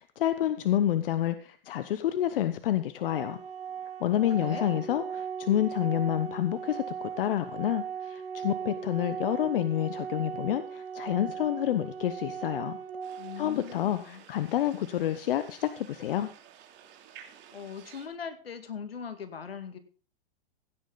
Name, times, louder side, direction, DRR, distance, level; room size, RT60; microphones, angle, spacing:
voice 1, 0.0-3.4 4.0-12.8 13.4-16.3, left 12 dB, 70° left, 12 dB, 1.0 m, -29 dB
Organ, 3.0-14.0, right 7 dB, 80° right, 2.1 m, -38 dB
voice 2, 4.0-4.7 13.2-14.2 17.5-19.8, left 6 dB, 90° left, 9 dB, 2.0 m, -40 dB
sound 1, 13.0-18.1, right 9 dB, 40° right, 2.9 m, -53 dB
16.0 x 9.6 x 3.9 m, 0.41 s
hypercardioid pair, 115°, 29 cm